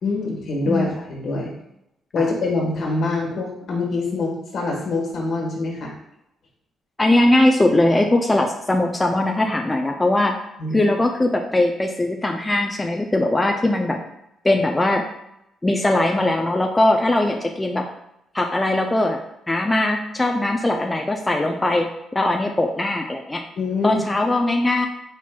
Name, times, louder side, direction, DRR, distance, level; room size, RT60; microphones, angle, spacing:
voice 1, 0.0-1.5 2.1-5.9 10.6-10.9 23.6-24.0, left 3 dB, 65° left, -1 dB, 1.4 m, -25 dB
voice 2, 0.7-1.0 2.2-2.3 7.0-10.3 10.7-14.0 14.4-15.0 15.6-17.9 18.3-19.2 19.5-23.4 23.8-24.9, left 1 dB, 15° left, 3 dB, 0.3 m, -20 dB
4.5 x 4.3 x 2.3 m, 0.84 s
cardioid pair, 90°, 0 cm